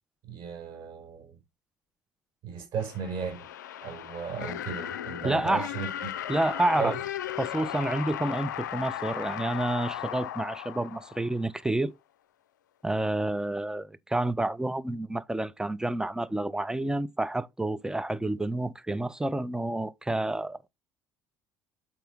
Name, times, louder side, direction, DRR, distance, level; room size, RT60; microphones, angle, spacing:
voice 1, 0.2-1.4 2.4-3.5 3.8-6.1 6.8-6.9, right 6 dB, 55° right, 4.9 m, -35 dB
sound 1, 2.8-11.7, left 11 dB, 80° left, 0.4 m, -36 dB
voice 2, 5.2-5.7 6.3-6.9 7.4-11.9 12.8-20.7, right 1 dB, 5° right, 0.6 m, -29 dB
7.2 x 5.7 x 3.4 m
figure-of-eight pair, 60°, 10 cm